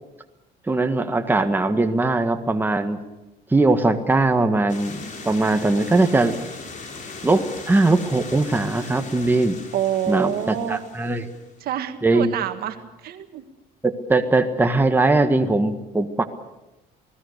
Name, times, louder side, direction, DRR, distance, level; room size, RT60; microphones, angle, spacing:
voice 1, 0.7-3.0 3.5-6.4 7.2-9.6 10.1-10.3 10.7-11.3 12.0-12.3 13.8-16.2, right 2 dB, 10° right, 5 dB, 1.7 m, -20 dB
sound 1, 4.7-11.6, left 3 dB, 45° left, 5.3 m, -38 dB
voice 2, 9.7-10.8 11.6-13.5, right 10 dB, 65° right, 7 dB, 1.8 m, -27 dB
27.5 x 19.0 x 6.7 m, 1.0 s
cardioid pair, 110°, 17 cm